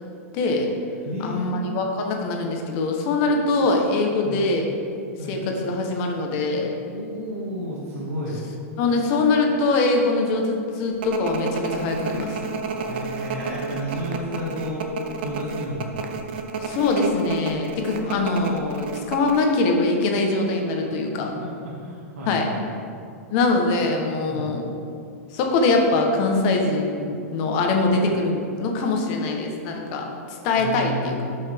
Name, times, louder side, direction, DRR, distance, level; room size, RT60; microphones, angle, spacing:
voice 1, 0.3-0.7 1.2-4.7 5.3-6.7 8.8-12.4 16.6-21.4 22.3-22.5 23.3-24.7 25.3-30.1 30.4-31.2, left 3 dB, 30° left, 2 dB, 0.9 m, -23 dB
voice 2, 1.1-1.8 4.2-4.4 5.2-5.4 6.9-8.4 12.8-14.8 15.2-16.0 21.4-22.6 24.3-24.5 30.6-31.3, equal, 85° right, -8 dB, 2.1 m, -32 dB
sound 1, 11.0-19.4, right 5 dB, 45° right, 0.7 m, -31 dB
12.0 x 5.6 x 3.4 m, 2.4 s
supercardioid pair, 175°, 8 cm